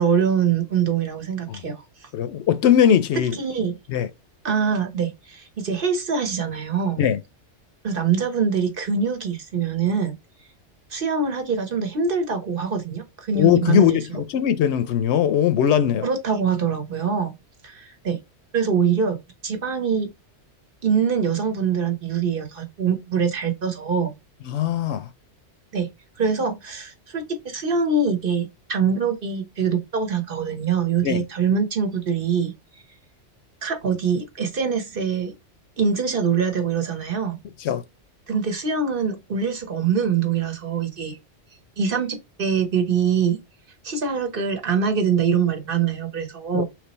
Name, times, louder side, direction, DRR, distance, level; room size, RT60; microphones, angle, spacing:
voice 1, 0.0-1.8 3.4-3.7 4.4-7.0 7.8-10.1 10.9-14.2 16.0-17.3 17.6-18.2 18.5-20.1 20.8-24.1 25.7-25.9 26.2-32.5 33.6-35.3 35.8-37.4 38.3-41.2 41.8-43.4 43.8-46.6, right 6 dB, 50° right, 1.1 m, -24 dB
voice 2, 2.1-3.4 3.9-4.1 7.0-7.2 13.3-16.1 24.5-25.1 31.0-31.2 37.6-37.8 46.5-46.6, left 9 dB, 70° left, 0.8 m, -20 dB
3.4 x 3.1 x 4.0 m
omnidirectional pair, 1.2 m